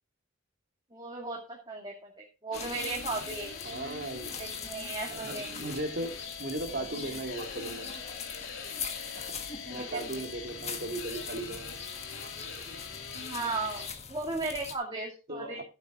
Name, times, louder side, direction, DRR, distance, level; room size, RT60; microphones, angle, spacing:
voice 1, 0.9-3.5 4.4-5.7 9.7-10.3 13.2-15.6, right 3 dB, 20° right, 2.3 m, -36 dB
sound 1, 2.5-13.9, left 5 dB, 75° left, 2.7 m, -43 dB
sound 2, 2.5-14.7, left 6 dB, 30° left, 1.6 m, -42 dB
voice 2, 3.6-4.4 5.1-7.9 8.8-11.8 15.3-15.6, right 2 dB, 50° right, 2.1 m, -37 dB
15.0 x 7.8 x 3.7 m
head